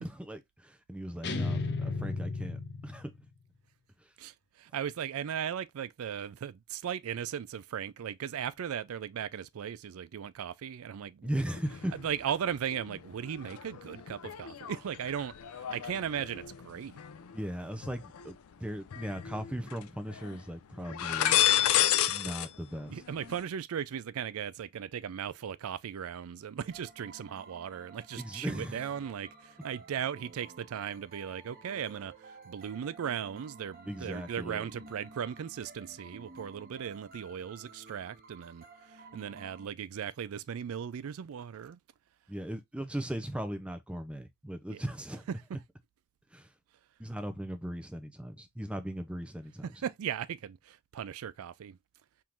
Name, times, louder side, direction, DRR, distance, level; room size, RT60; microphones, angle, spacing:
voice 1, 0.0-3.1 11.2-11.9 17.3-21.4 22.1-23.0 28.2-28.9 33.9-34.7 42.3-45.6 46.3-46.5 47.0-49.8, equal, 5° right, 0.6 m, -38 dB
sound 1, 1.2-3.3, left 3 dB, 55° left, 0.8 m, -34 dB
voice 2, 4.2-11.3 11.9-16.9 22.9-32.1 32.4-41.8 44.7-44.8 49.6-51.8, right 8 dB, 75° right, 0.4 m, -37 dB
sound 2, 11.5-12.3 12.7-18.3 18.9-19.8 20.1-20.4 20.8-22.5 22.7-23.4, left 11 dB, 80° left, 0.5 m, -32 dB
sound 3, 26.7-39.7, right 3 dB, 45° right, 1.1 m, -53 dB
4.5 x 3.7 x 2.5 m
head